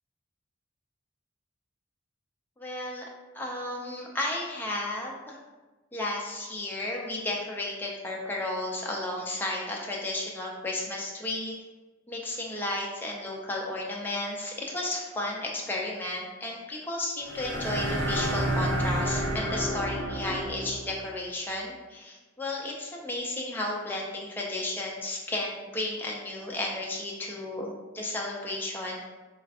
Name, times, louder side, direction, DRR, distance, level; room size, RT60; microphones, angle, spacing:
voice 1, 2.6-3.0 3.3-5.4 5.9-11.6 12.1-29.1, left 1 dB, 10° left, -2 dB, 0.3 m, -33 dB
sound 1, 17.2-21.0, right 1 dB, 65° right, 0.6 m, -30 dB
3.4 x 2.4 x 2.3 m, 1.2 s
head